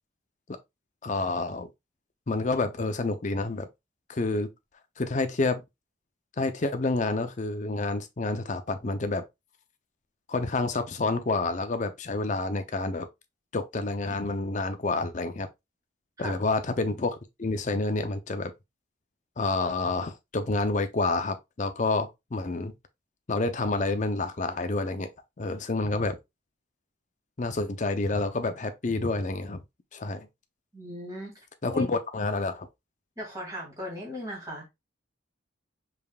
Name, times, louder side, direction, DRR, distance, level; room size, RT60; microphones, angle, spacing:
voice 1, 1.0-1.7 2.3-3.7 4.1-4.5 5.0-5.6 6.4-9.2 10.3-13.1 13.5-15.5 16.2-18.5 19.4-22.7 23.3-25.1 25.4-26.2 27.4-29.6 29.9-30.3 31.6-32.7, left 3 dB, 40° left, 0.5 m, -28 dB
voice 2, 30.7-31.4 31.7-31.8 33.2-34.7, left 1 dB, 15° right, 2.3 m, -37 dB
5.1 x 3.5 x 2.3 m
head